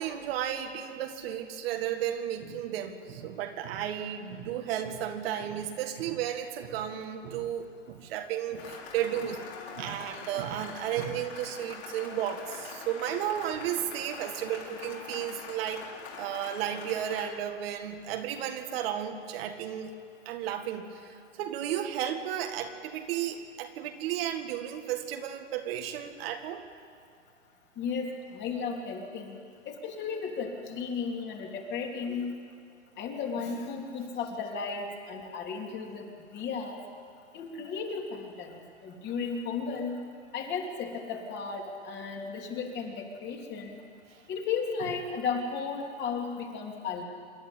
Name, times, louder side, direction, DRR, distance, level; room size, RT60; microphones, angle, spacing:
voice 1, 0.0-9.4 9.8-15.8 16.2-19.9 20.3-26.7, right 10 dB, 50° right, 5 dB, 1.9 m, -33 dB
Cheering / Applause, 8.6-17.3, left 5 dB, 55° left, 4.8 m, -44 dB
voice 2, 27.8-29.4 29.7-32.3 33.0-36.8 37.3-40.0 40.3-43.8 44.3-47.0, left 5 dB, 30° left, 1 dB, 3.0 m, -34 dB
26.5 x 11.5 x 9.1 m, 2.2 s
hypercardioid pair, 125°, 37 cm